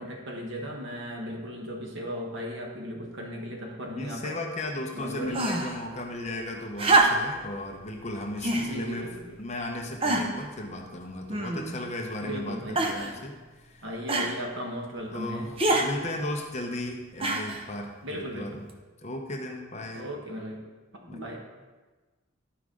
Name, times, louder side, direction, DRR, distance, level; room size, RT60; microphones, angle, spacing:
voice 1, 0.0-4.3 4.9-5.4 8.6-9.3 12.2-12.9 13.8-15.5 18.0-18.6 19.9-20.7 21.0-21.5, equal, 55° right, 0 dB, 1.3 m, -36 dB
voice 2, 4.0-9.1 9.4-13.8 15.1-15.5 15.8-18.6 19.0-20.1 21.1-21.2, left 1 dB, 30° left, 1 dB, 0.8 m, -35 dB
sound 1, 5.3-5.8 6.8-7.4 8.4-8.7 9.4-9.5 10.0-10.5 11.3-11.8 12.8-13.1 14.1-14.3 15.6-15.9 17.2-17.7 18.7-18.8, right 2 dB, 25° right, 0.6 m, -25 dB
11.5 x 4.8 x 3.8 m, 1.3 s
head